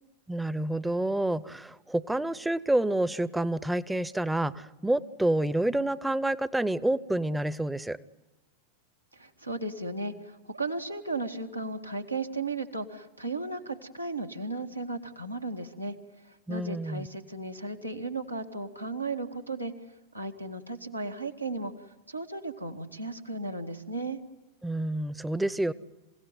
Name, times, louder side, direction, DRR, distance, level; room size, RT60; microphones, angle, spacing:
voice 1, 0.3-8.0 16.5-17.1 24.6-25.7, right 1 dB, 5° right, 19 dB, 0.8 m, -28 dB
voice 2, 9.1-19.7 20.1-21.7 22.1-24.2, right 2 dB, 90° right, 3 dB, 1.9 m, -35 dB
27.5 x 17.0 x 9.5 m, 1.1 s
figure-of-eight pair, 90°, 0 cm